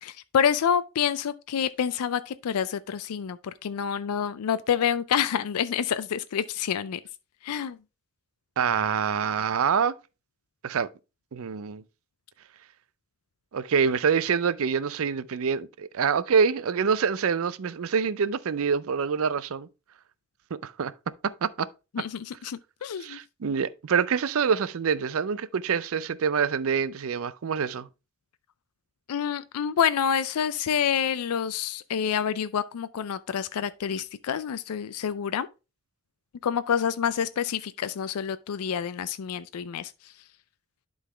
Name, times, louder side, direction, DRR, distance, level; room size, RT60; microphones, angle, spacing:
voice 1, 0.0-7.0 7.4-7.8 21.9-23.2 29.1-35.5 36.4-39.9, left 8 dB, 90° left, 0.4 m, -28 dB
voice 2, 8.6-9.9 10.6-10.9 11.3-11.8 13.5-19.7 20.5-20.9 21.2-21.7 23.0-27.9, right 6 dB, 70° right, 0.4 m, -26 dB
11.0 x 4.0 x 3.3 m
head